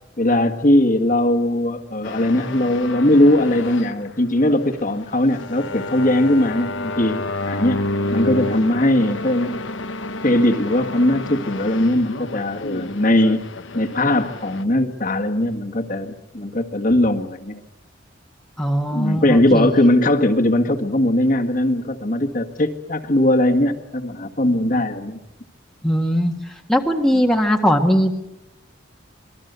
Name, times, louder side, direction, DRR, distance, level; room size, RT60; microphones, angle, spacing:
voice 1, 0.2-7.8 8.1-9.6 10.2-13.4 13.7-17.6 18.9-25.2 27.1-27.2, left 1 dB, 40° left, 3 dB, 1.8 m, -19 dB
sound 1, 2.0-14.6, left 2 dB, 75° left, 1.1 m, -30 dB
voice 2, 18.6-19.7 25.8-26.3 26.7-28.2, equal, ahead, 2 dB, 1.7 m, -19 dB
26.0 x 21.0 x 8.2 m, 0.92 s
head